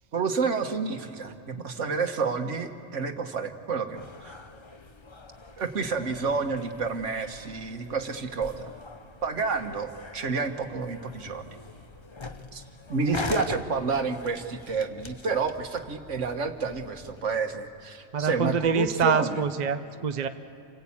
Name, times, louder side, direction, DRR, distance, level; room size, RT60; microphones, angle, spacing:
voice 1, 0.1-4.3 5.6-8.7 9.2-11.5 12.5-12.6 12.9-19.4, right 4 dB, 70° right, 6 dB, 1.7 m, -29 dB
sound 1, 3.9-17.2, left 3 dB, 25° left, 0.7 m, -42 dB
voice 2, 18.1-20.3, right 6 dB, 40° right, 8 dB, 0.8 m, -26 dB
28.5 x 18.5 x 8.7 m, 2.8 s
omnidirectional pair, 1.3 m